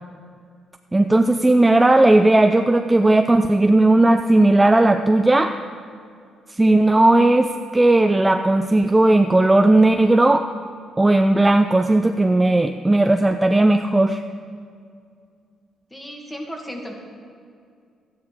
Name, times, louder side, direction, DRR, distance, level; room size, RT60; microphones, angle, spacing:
voice 1, 0.9-5.5 6.6-10.4 11.0-14.2, right 2 dB, 15° right, 6 dB, 0.4 m, -16 dB
voice 2, 15.9-16.9, equal, 15° left, 1 dB, 1.9 m, -34 dB
12.5 x 9.7 x 4.7 m, 2.3 s
cardioid pair, 90°, 0 cm